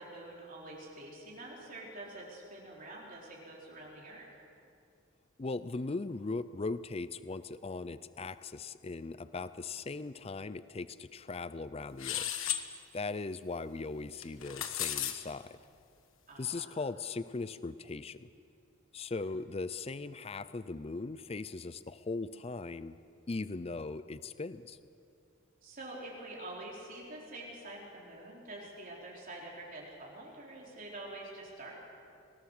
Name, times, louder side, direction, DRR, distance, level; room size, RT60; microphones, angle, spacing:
voice 1, 0.0-4.3 16.3-16.7 25.6-31.8, right 2 dB, 40° right, -3 dB, 4.0 m, -46 dB
voice 2, 5.4-12.3 12.9-15.6 16.4-18.3 18.9-23.0 23.3-24.8, left 3 dB, 25° left, 14 dB, 0.4 m, -39 dB
sound 1, 12.0-12.6 14.2-15.1, left 11 dB, 65° left, 1.4 m, -34 dB
25.5 x 19.0 x 6.6 m, 2.5 s
head